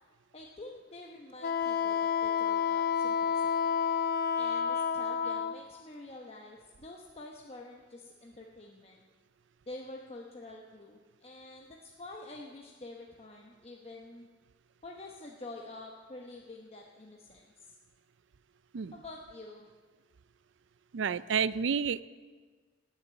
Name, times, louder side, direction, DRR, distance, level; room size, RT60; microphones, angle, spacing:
voice 1, 0.3-3.8 4.4-9.0 9.7-14.3 14.8-17.7 18.9-19.7, left 2 dB, 30° left, -1 dB, 0.9 m, -48 dB
Wind instrument woodwind instrument, 1.4-5.6, left 7 dB, 50° left, 0.5 m, -29 dB
voice 2, 20.9-22.0, right 6 dB, 70° right, 17 dB, 0.4 m, -30 dB
19.0 x 6.7 x 8.0 m, 1.5 s
head